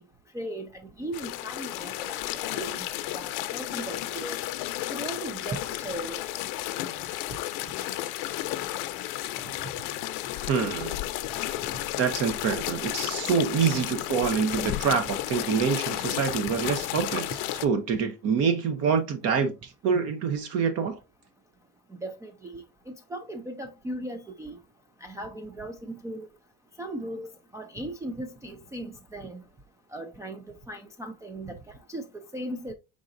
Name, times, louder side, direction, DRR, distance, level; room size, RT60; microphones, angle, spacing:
voice 1, 0.3-0.7 1.0-2.8 3.1-4.4 4.9-5.6 5.8-6.3 22.0-24.6 25.0-26.3 26.8-29.4 29.9-31.6 31.9-32.7, right 1 dB, 10° right, 0.3 m, -37 dB
sound 1, 1.1-17.7, left 15 dB, 65° left, 0.6 m, -33 dB
voice 2, 10.4-11.0 12.0-21.0, right 6 dB, 45° right, 0.8 m, -26 dB
4.8 x 3.8 x 2.5 m
cardioid pair, 135°, 35 cm